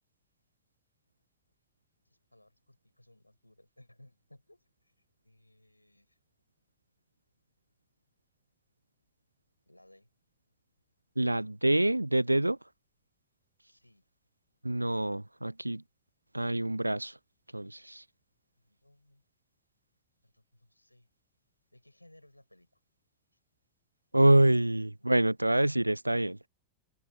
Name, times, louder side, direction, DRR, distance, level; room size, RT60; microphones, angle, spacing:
voice 1, 2.0-4.9 5.2-6.2 9.7-10.1 11.3-11.5 13.6-14.0 18.6-19.2 20.2-21.1 21.7-22.8 25.0-25.6, left 1 dB, 85° left, 7.3 m, -61 dB
voice 2, 11.2-12.6 14.6-15.8 16.3-17.2 17.5-18.0 24.1-26.4, right 1 dB, 85° right, 0.4 m, -26 dB
figure-of-eight pair, 90°, 0 cm